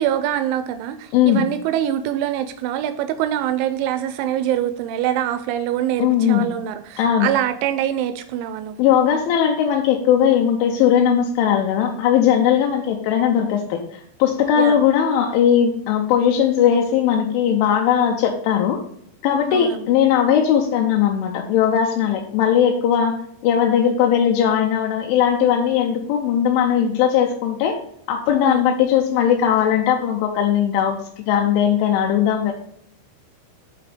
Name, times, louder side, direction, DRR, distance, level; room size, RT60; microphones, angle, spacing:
voice 1, 0.0-9.0 14.6-14.9 19.5-19.9 28.4-28.7, right 11 dB, 90° right, 9 dB, 2.6 m, -24 dB
voice 2, 1.1-1.5 6.0-6.5 7.0-7.3 8.8-18.8 19.2-23.2 23.4-27.8 28.1-32.5, left 9 dB, 80° left, 1 dB, 2.9 m, -18 dB
11.5 x 4.0 x 3.4 m, 0.70 s
omnidirectional pair, 5.8 m